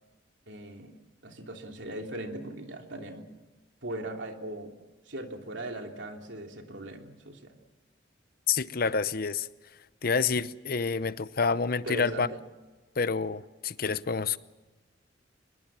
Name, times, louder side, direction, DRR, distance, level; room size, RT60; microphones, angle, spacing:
voice 1, 0.5-0.9 1.2-3.3 3.8-4.7 5.1-7.6 11.8-12.4, right 1 dB, 75° right, 3.1 m, -39 dB
voice 2, 8.5-9.5 10.0-12.3 13.0-14.4, left 5 dB, 50° left, 0.7 m, -28 dB
24.5 x 22.0 x 7.5 m
head